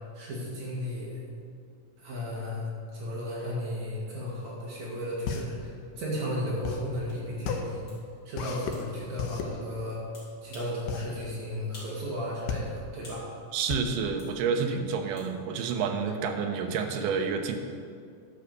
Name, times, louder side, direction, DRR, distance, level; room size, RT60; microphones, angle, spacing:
voice 1, 0.1-1.2 2.0-7.8 8.2-10.0 10.4-13.2, left 1 dB, 60° right, -5 dB, 3.0 m, -34 dB
sound 1, 5.2-15.1, left 6 dB, 90° left, 2.5 m, -36 dB
sound 2, 7.1-7.2 7.9-8.0 8.7-8.9 10.1-10.8 11.2-11.3 11.7-12.0 12.3-13.3 14.2-14.3 15.2-15.3, left 1 dB, 30° left, 3.1 m, -49 dB
voice 2, 13.5-17.6, right 6 dB, 75° right, 5 dB, 2.3 m, -29 dB
12.0 x 5.6 x 6.8 m, 2.3 s
omnidirectional pair, 3.9 m